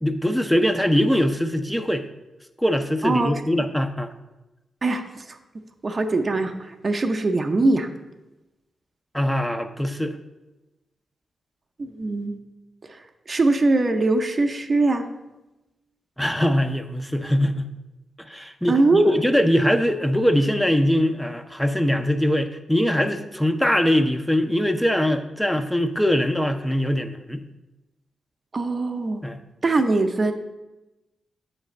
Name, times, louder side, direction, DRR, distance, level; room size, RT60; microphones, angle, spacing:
voice 1, 0.0-2.1 2.6-4.1 9.1-10.2 16.2-17.7 18.3-27.4 29.2-29.4, equal, 5° left, 7 dB, 0.5 m, -22 dB
voice 2, 4.8-5.4 5.8-7.9 11.8-12.4 12.9-13.0 13.3-15.1 18.7-19.1 28.5-29.2 29.6-30.3, right 2 dB, 45° right, 6 dB, 0.6 m, -22 dB
7.1 x 3.3 x 5.1 m, 1.0 s
supercardioid pair, 40°, 0 cm